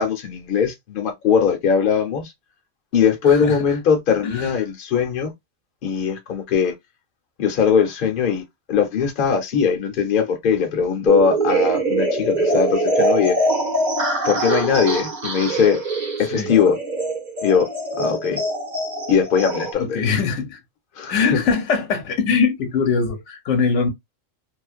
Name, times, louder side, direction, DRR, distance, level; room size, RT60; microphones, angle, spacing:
voice 1, 0.0-2.3 2.9-5.3 5.8-6.7 7.4-8.4 8.7-13.4 14.2-15.8 16.2-16.8 17.4-17.7 18.0-18.4 19.1-20.0 21.0-21.4, left 6 dB, 50° left, 0.8 m, -20 dB
voice 2, 3.3-3.6 4.2-4.5 16.3-16.5 19.8-20.6 21.1-23.9, left 5 dB, 75° left, 1.0 m, -22 dB
sound 1, 11.1-19.7, right 2 dB, 45° right, 0.9 m, -23 dB
2.5 x 2.1 x 2.3 m
omnidirectional pair, 1.2 m